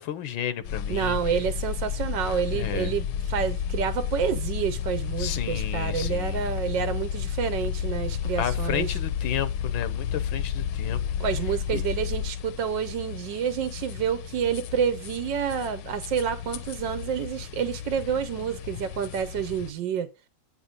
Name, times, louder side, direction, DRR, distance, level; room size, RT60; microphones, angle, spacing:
voice 1, 0.0-1.2 2.5-3.0 5.2-6.4 8.4-11.0 11.7-11.8, left 10 dB, 90° left, 1.6 m, -32 dB
sound 1, 0.6-19.7, left 8 dB, 70° left, 1.2 m, -32 dB
voice 2, 0.9-9.0 11.2-20.1, right 8 dB, 70° right, 1.5 m, -29 dB
9.1 x 5.6 x 5.1 m
omnidirectional pair, 2.1 m